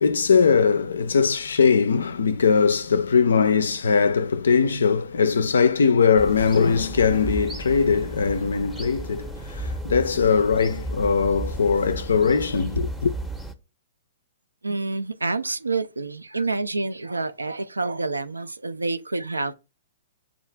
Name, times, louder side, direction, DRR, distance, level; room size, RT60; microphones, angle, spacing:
voice 1, 0.0-13.1, left 5 dB, 70° left, 0.3 m, -20 dB
sound 1, 6.2-13.5, right 1 dB, 5° right, 0.6 m, -34 dB
voice 2, 14.6-19.5, right 3 dB, 85° right, 0.3 m, -28 dB
7.0 x 2.4 x 3.1 m
figure-of-eight pair, 110°, 0 cm